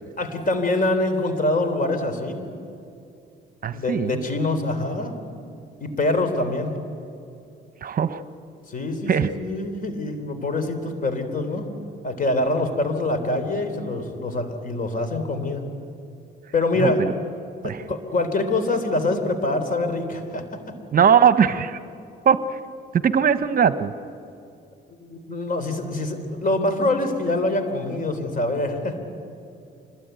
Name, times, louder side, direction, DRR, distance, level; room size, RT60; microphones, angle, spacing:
voice 1, 0.2-2.4 3.7-5.1 5.8-6.8 8.7-11.7 12.0-15.6 16.5-17.0 17.6-20.6 25.0-29.0, left 2 dB, 45° left, 8 dB, 3.6 m, -25 dB
voice 2, 3.6-4.2 7.8-8.2 9.1-9.3 16.8-17.1 17.6-17.8 20.9-21.8 22.2-22.4 23.0-23.9, right 7 dB, 45° right, 12 dB, 1.0 m, -19 dB
25.5 x 21.0 x 9.2 m, 2.5 s
cardioid pair, 90°, 20 cm